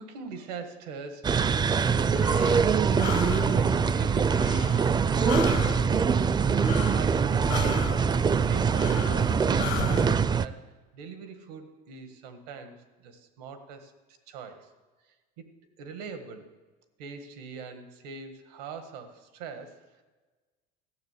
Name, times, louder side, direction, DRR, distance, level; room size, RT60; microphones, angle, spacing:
voice 1, 0.0-1.8 2.4-3.1 3.5-4.9 5.1-6.4 6.9-8.1 8.4-13.9 14.3-15.4 15.8-16.5 17.0-20.0, right 5 dB, 90° right, 8 dB, 1.6 m, -42 dB
sound 1, 1.2-10.5, right 6 dB, 20° right, 0.4 m, -23 dB
Breathing, 1.8-10.1, left 11 dB, 70° left, 1.2 m, -37 dB
14.5 x 6.7 x 8.2 m, 1.3 s
supercardioid pair, 100°, 20 cm